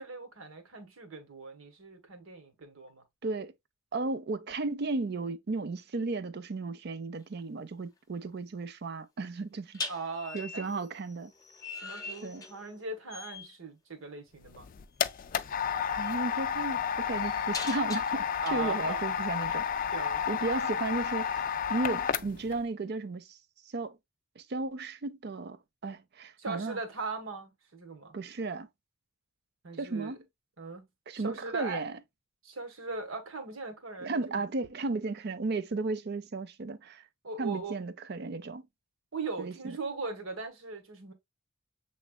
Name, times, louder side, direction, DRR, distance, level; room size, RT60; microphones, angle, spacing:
voice 1, 0.0-3.0 9.9-10.7 11.8-14.7 18.4-19.0 19.9-20.2 26.4-28.1 29.6-30.1 30.6-30.8 31.2-31.8 32.4-34.4 37.2-37.9 39.1-41.1, right 3 dB, 80° right, 1.4 m, -39 dB
voice 2, 3.2-3.5 3.9-9.8 10.3-11.3 12.2-12.4 15.9-19.7 20.3-23.4 23.7-24.0 24.4-25.6 25.8-26.8 28.1-28.7 29.8-30.2 31.1-31.9 34.0-37.0 37.4-38.6 39.4-39.8, right 3 dB, 50° right, 0.5 m, -34 dB
sound 1, 7.1-7.4 9.7-12.8 13.1-13.5 15.0-15.2 15.7-18.5, left 3 dB, 15° left, 0.7 m, -42 dB
sound 2, 14.4-22.6, left 7 dB, 40° left, 0.3 m, -31 dB
7.0 x 3.2 x 2.2 m
head